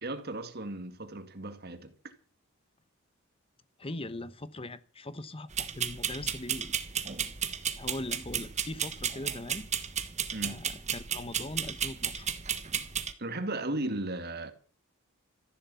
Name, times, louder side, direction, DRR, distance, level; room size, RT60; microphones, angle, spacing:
voice 1, 0.0-2.1 10.3-10.6 13.2-14.5, right 2 dB, 45° right, 2.1 m, -36 dB
voice 2, 3.8-6.7 7.7-9.7 10.4-12.3, left 1 dB, 25° left, 1.0 m, -40 dB
sound 1, 5.5-13.1, right 8 dB, 30° right, 1.3 m, -34 dB
14.5 x 11.5 x 7.0 m
head